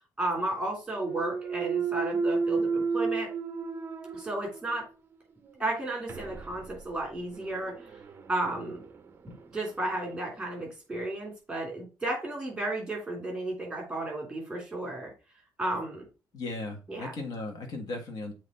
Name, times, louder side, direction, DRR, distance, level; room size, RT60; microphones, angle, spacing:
voice 1, 0.2-3.3 4.1-4.8 5.6-7.7 8.3-8.8 9.5-15.1 15.6-16.1 16.9-17.1, right 2 dB, 5° right, 0 dB, 2.9 m, -33 dB
Thump thud, 0.9-4.9 5.4-10.1, right 4 dB, 25° right, 0.6 m, -33 dB
voice 2, 16.3-18.3, left 2 dB, 50° left, 2 dB, 1.7 m, -36 dB
7.5 x 3.1 x 4.3 m, 0.31 s
cardioid pair, 175°, 8 cm